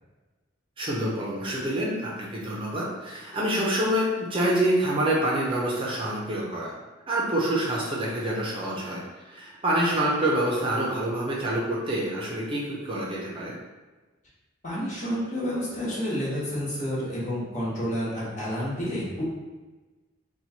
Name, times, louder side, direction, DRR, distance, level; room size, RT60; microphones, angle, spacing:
voice 1, 0.8-6.7 7.1-13.5, right 1 dB, 25° right, -4 dB, 0.6 m, -27 dB
voice 2, 14.6-19.2, equal, 40° left, -7 dB, 1.1 m, -30 dB
2.9 x 2.3 x 4.2 m, 1.2 s
head